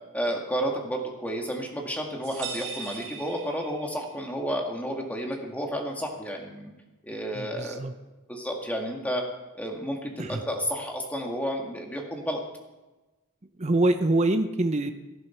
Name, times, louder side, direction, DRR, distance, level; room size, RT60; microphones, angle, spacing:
voice 1, 0.1-6.7 7.0-7.8 8.3-9.2 9.5-12.4, equal, 5° left, 1 dB, 2.0 m, -31 dB
sound 1, 2.2-4.2, right 5 dB, 60° right, 4.7 m, -39 dB
voice 2, 7.3-7.9 10.2-10.4 13.6-14.9, right 2 dB, 30° right, 7 dB, 0.7 m, -25 dB
18.0 x 11.0 x 4.5 m, 1.1 s
head